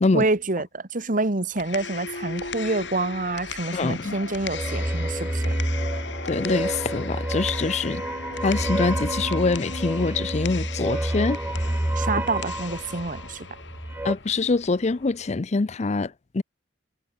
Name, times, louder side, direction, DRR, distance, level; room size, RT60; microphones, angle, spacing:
voice 1, 0.1-5.5 12.0-13.5, right 2 dB, 50° right, 1.8 m, -27 dB
sound 1, 1.4-15.4, left 6 dB, 80° left, 3.5 m, -38 dB
sound 2, 1.7-11.3, left 2 dB, 65° left, 1.2 m, -41 dB
voice 2, 3.7-4.2 6.2-8.0 8.4-11.4 14.0-16.4, left 3 dB, 40° left, 0.5 m, -24 dB
sound 3, 4.4-14.2, right 1 dB, 10° right, 0.5 m, -29 dB
head